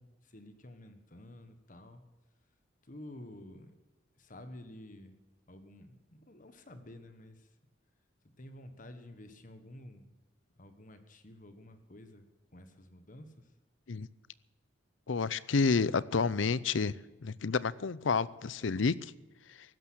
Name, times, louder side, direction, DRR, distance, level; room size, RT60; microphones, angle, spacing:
voice 1, 0.0-2.0 2.8-3.8 4.2-5.2 5.5-7.5 8.4-10.2 10.6-13.5, left 1 dB, 45° left, 9 dB, 1.3 m, -51 dB
voice 2, 15.1-16.9 17.2-19.1, left 4 dB, 80° left, 19 dB, 0.6 m, -29 dB
15.5 x 12.0 x 6.2 m, 1.1 s
head